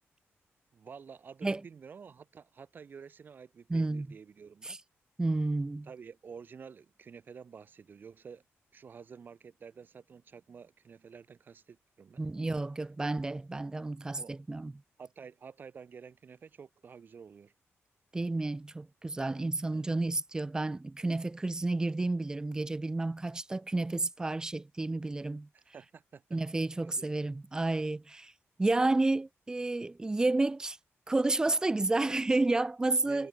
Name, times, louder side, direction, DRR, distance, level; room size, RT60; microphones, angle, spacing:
voice 1, 0.7-4.8 5.8-8.4 8.7-12.2 14.2-14.4 15.0-17.5 19.7-19.9 25.5-26.2 26.8-27.1 33.0-33.3, right 6 dB, 40° right, 2.7 m, -50 dB
voice 2, 3.7-4.1 4.6-4.8 5.2-5.9 12.2-14.7 18.1-25.5 26.3-28.3 28.6-30.8 31.1-33.3, right 2 dB, 15° right, 0.8 m, -31 dB
wide cardioid pair, 170°, 5 cm